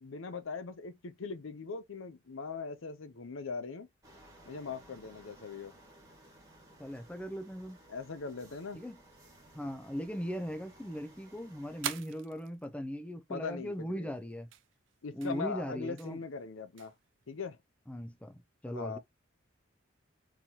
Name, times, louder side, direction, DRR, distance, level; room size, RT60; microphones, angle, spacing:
voice 1, 0.0-3.9 4.5-5.7 7.9-8.8 13.3-14.1 15.0-16.9 17.3-17.6 18.7-19.0, left 4 dB, 85° left, 0.6 m, -40 dB
sound 1, 4.0-11.9, right 1 dB, 15° right, 1.4 m, -58 dB
voice 2, 6.8-7.8 8.7-9.0 9.5-14.5 15.1-16.2 17.9-18.4 18.6-19.0, equal, 5° left, 0.4 m, -39 dB
sound 2, 11.6-17.5, right 10 dB, 70° right, 0.4 m, -48 dB
3.9 x 3.0 x 2.8 m
head